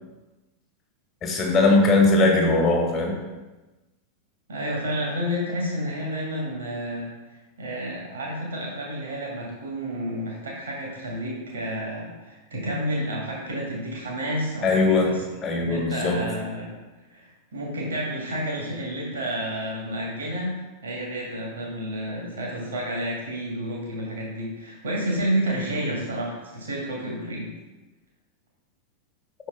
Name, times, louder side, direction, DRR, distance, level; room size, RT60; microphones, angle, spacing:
voice 1, 1.2-3.2 14.6-15.1 15.4-16.2, left 3 dB, 25° left, 1 dB, 1.4 m, -20 dB
voice 2, 4.5-15.2 15.5-16.8 17.1-27.5, equal, 65° right, -3 dB, 1.7 m, -30 dB
6.1 x 4.6 x 3.8 m, 1.1 s
figure-of-eight pair, 90°, 0 cm